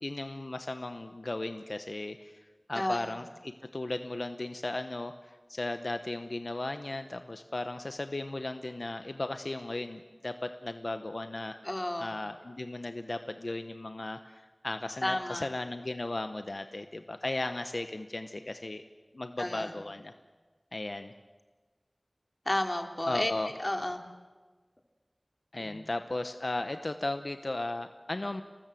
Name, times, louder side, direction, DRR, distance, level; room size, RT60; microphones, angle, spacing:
voice 1, 0.0-11.6 12.0-18.8 19.1-20.1 20.7-21.1 23.1-23.5 25.5-28.4, left 2 dB, 75° left, 8 dB, 1.0 m, -36 dB
voice 2, 2.7-3.2 11.6-12.1 15.0-15.5 19.4-19.8 22.5-23.3 23.6-24.0 25.6-25.8, left 1 dB, 40° left, 5 dB, 2.8 m, -32 dB
30.0 x 20.0 x 7.8 m, 1.4 s
wide cardioid pair, 45°, 0 cm